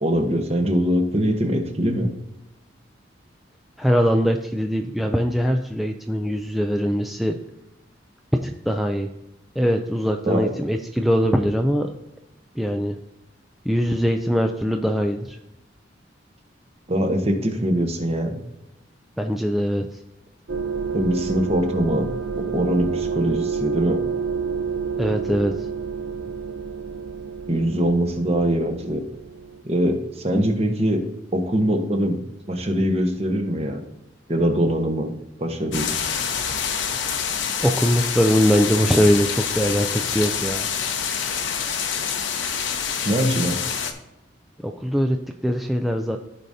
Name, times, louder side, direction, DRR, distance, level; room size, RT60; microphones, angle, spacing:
voice 1, 0.0-2.1 10.3-10.5 16.9-18.4 20.9-22.1 22.3-24.0 27.5-29.0 29.6-31.0 31.3-32.2 32.5-33.8 34.3-35.1 35.4-35.9 43.0-43.6, equal, 35° right, 4 dB, 1.1 m, -22 dB
voice 2, 3.8-7.4 8.3-9.1 9.6-11.9 12.6-13.0 13.7-15.4 19.2-19.9 25.0-25.7 37.6-40.7 44.6-46.2, equal, ahead, 3 dB, 0.4 m, -22 dB
sound 1, 20.5-29.6, right 5 dB, 80° right, 0.6 m, -29 dB
sound 2, 35.7-43.9, left 7 dB, 85° left, 0.9 m, -26 dB
14.5 x 5.0 x 2.7 m, 0.92 s
head